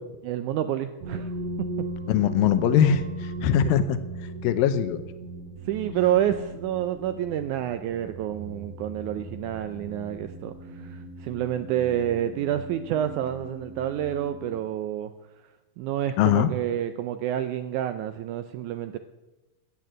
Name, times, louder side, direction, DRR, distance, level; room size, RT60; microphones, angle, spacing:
voice 1, 0.2-1.3 5.7-15.1 15.8-19.0, right 11 dB, 80° right, 10 dB, 1.8 m, -28 dB
sound 1, 1.0-14.6, right 2 dB, 60° right, 2.1 m, -38 dB
voice 2, 2.1-4.0 4.4-5.0 16.2-16.5, left 9 dB, 85° left, 12 dB, 2.5 m, -21 dB
13.5 x 8.4 x 7.5 m, 1.1 s
omnidirectional pair, 4.0 m